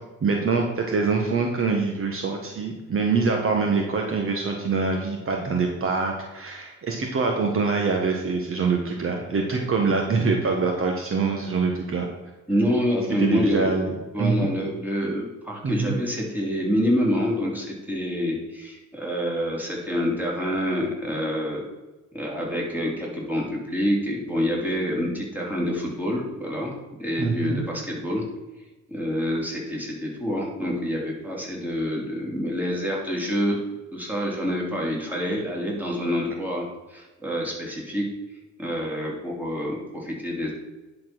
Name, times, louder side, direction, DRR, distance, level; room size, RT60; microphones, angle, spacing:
voice 1, 0.2-12.1 13.2-14.5 15.6-16.0 27.2-27.6, right 4 dB, 45° right, 2 dB, 1.4 m, -24 dB
voice 2, 12.5-13.7 14.1-21.6 22.1-26.7 27.0-28.2 28.9-33.6 33.9-38.0 38.6-40.5, equal, 5° right, -3 dB, 3.3 m, -27 dB
10.5 x 4.5 x 6.1 m, 1.1 s
cardioid pair, 90°, 30 cm